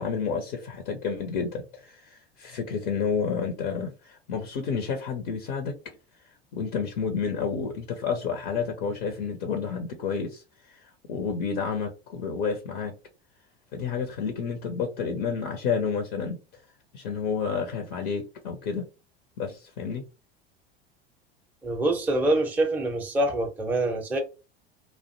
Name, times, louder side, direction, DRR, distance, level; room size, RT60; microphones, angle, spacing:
voice 1, 0.0-5.8 6.5-10.4 10.7-10.8 11.1-12.9 13.7-16.4 16.9-18.9 19.4-20.0, left 6 dB, 50° left, 0.6 m, -30 dB
voice 2, 21.6-24.2, right 1 dB, 5° right, 0.5 m, -25 dB
2.4 x 2.1 x 2.6 m
figure-of-eight pair, 75°, 31 cm